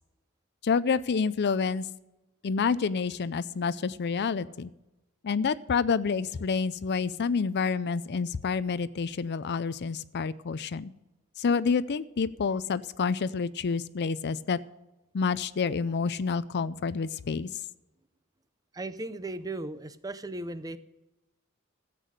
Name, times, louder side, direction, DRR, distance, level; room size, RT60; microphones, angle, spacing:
voice 1, 0.6-1.9 2.4-4.7 5.2-10.9 11.4-14.6 15.1-17.5, left 5 dB, 50° left, 17 dB, 0.5 m, -28 dB
voice 2, 18.7-20.8, right 2 dB, 15° right, 13 dB, 0.6 m, -36 dB
14.0 x 8.4 x 6.5 m, 1.0 s
head